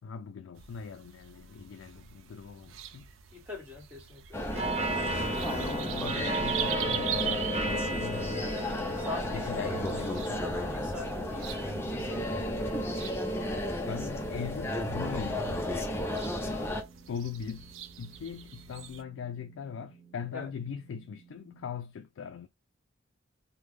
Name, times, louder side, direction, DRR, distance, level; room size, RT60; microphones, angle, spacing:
voice 1, 0.0-3.1 5.9-9.0 9.3-10.4 13.8-15.8 17.1-22.5, left 6 dB, 75° left, 0.3 m, -40 dB
sound 1, 0.6-19.0, right 9 dB, 75° right, 0.5 m, -42 dB
voice 2, 3.3-5.2 7.7-8.1 9.0-9.9 10.2-13.2 20.3-20.5, left 2 dB, 10° right, 1.3 m, -44 dB
sound 2, 4.3-16.8, left 1 dB, 10° left, 0.4 m, -33 dB
sound 3, 4.5-21.8, right 1 dB, 30° right, 0.6 m, -39 dB
3.4 x 2.1 x 3.2 m
head